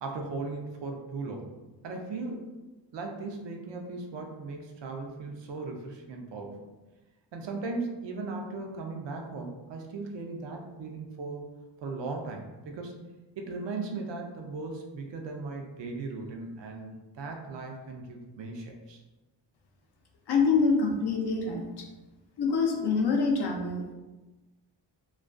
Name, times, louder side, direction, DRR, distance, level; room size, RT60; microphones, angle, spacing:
voice 1, 0.0-1.5 1.8-2.5 2.9-6.7 7.3-11.5 11.8-13.0 13.4-19.0, right 3 dB, 65° right, 2 dB, 0.5 m, -37 dB
voice 2, 20.3-21.9 22.4-23.9, left 4 dB, 60° left, 1 dB, 0.5 m, -26 dB
2.3 x 2.2 x 2.4 m, 1.1 s
wide cardioid pair, 130°, 46 cm